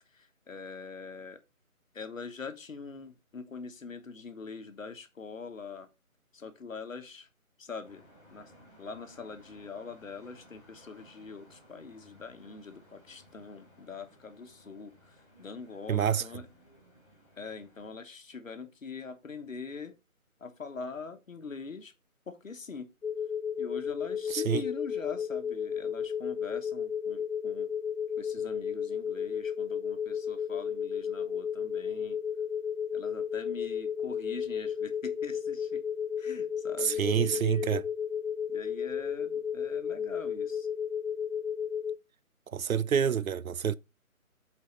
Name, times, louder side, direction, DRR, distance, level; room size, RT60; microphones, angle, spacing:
voice 1, 0.1-1.4 1.9-5.9 6.3-7.3 7.6-8.5 8.8-16.5 17.4-20.0 20.4-21.9 22.3-22.9 23.6-27.7 28.2-32.2 32.9-35.8 36.2-37.8 38.5-40.7, left 5 dB, 65° left, 1.2 m, -43 dB
sound 1, 7.8-18.0, equal, 5° left, 2.2 m, -59 dB
voice 2, 15.9-16.2 24.3-24.6 36.8-37.8 42.5-43.8, right 8 dB, 70° right, 0.5 m, -27 dB
sound 2, 23.0-41.9, left 7 dB, 90° left, 1.1 m, -33 dB
8.7 x 3.9 x 3.1 m
figure-of-eight pair, 155°, 43 cm